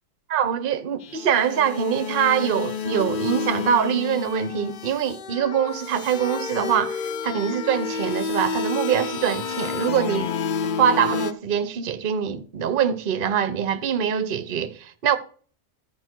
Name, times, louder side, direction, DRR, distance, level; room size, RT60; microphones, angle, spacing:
voice 1, 0.3-10.3 10.8-15.2, right 8 dB, 45° right, 0.9 m, -24 dB
sound 1, 1.0-11.3, left 6 dB, 55° left, 0.6 m, -30 dB
13.0 x 5.3 x 4.5 m
omnidirectional pair, 1.3 m